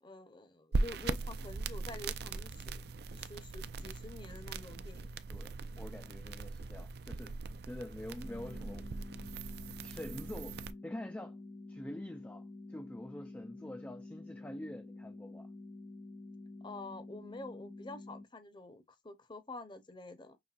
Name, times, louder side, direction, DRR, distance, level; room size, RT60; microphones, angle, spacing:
voice 1, 0.0-2.8 3.1-5.1 13.5-13.8 16.6-20.4, left 2 dB, 25° left, 0.7 m, -48 dB
sound 1, 0.7-10.7, right 3 dB, 55° right, 0.5 m, -40 dB
voice 2, 5.3-7.4 7.7-8.9 9.8-11.4 11.7-15.5, left 1 dB, 10° left, 0.3 m, -46 dB
sound 2, 8.2-18.2, left 2 dB, 85° left, 1.6 m, -49 dB
5.9 x 3.2 x 2.4 m
head